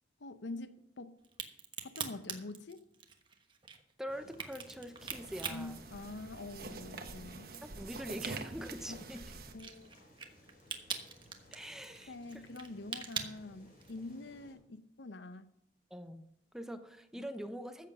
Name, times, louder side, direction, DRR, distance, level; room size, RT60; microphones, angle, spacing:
voice 1, 0.2-1.2 1.8-2.8 5.5-7.5 8.9-9.0 9.5-10.1 12.1-15.5 17.2-17.3, left 2 dB, 85° left, 0.8 m, -46 dB
Crack, 1.2-6.8 7.1-14.1, right 6 dB, 25° right, 1.2 m, -43 dB
voice 2, 4.0-5.8 7.6-9.2 11.5-12.1 15.9-17.9, equal, 5° right, 0.7 m, -44 dB
sound 1, 4.1-14.5, left 1 dB, 55° left, 4.4 m, -61 dB
sound 2, 5.0-9.5, right 3 dB, 55° right, 1.2 m, -45 dB
14.0 x 7.6 x 5.6 m
head